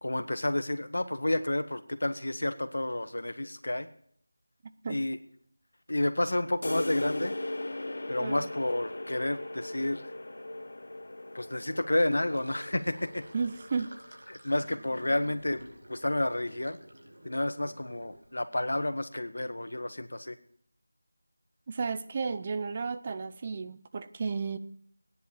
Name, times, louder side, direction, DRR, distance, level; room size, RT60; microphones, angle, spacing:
voice 1, 0.0-3.9 4.9-5.2 5.9-7.3 8.1-10.1 11.3-13.2 14.3-16.8 17.2-20.3, left 1 dB, 80° left, 9 dB, 1.7 m, -30 dB
sound 1, 6.6-14.2, left 2 dB, 65° left, 1.0 m, -38 dB
Sink (filling or washing), 12.1-18.4, right 1 dB, 80° right, 5.0 m, -51 dB
voice 2, 13.3-13.9 21.7-24.6, right 5 dB, 20° right, 11 dB, 0.5 m, -33 dB
16.5 x 10.0 x 7.2 m, 0.65 s
figure-of-eight pair, 175°, 0 cm